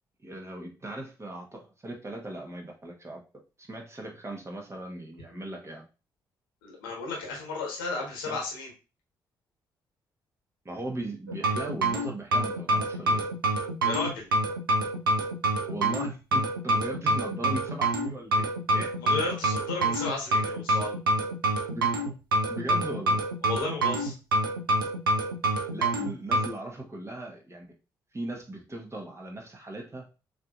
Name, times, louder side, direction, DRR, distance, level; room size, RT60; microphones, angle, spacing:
voice 1, 0.2-3.2 3.6-5.8 8.3-8.4 10.6-13.2 15.7-19.3 21.7-21.9 22.5-23.2 25.7-27.7 28.1-30.0, right 1 dB, 25° right, 2 dB, 1.3 m, -38 dB
voice 2, 6.6-8.7 13.8-14.3 19.0-20.9 23.4-24.1, left 3 dB, 80° left, -1 dB, 1.4 m, -33 dB
sound 1, 11.3-26.5, right 2 dB, 85° right, 0.5 m, -26 dB
6.4 x 3.0 x 2.5 m, 0.31 s
figure-of-eight pair, 40°, 11 cm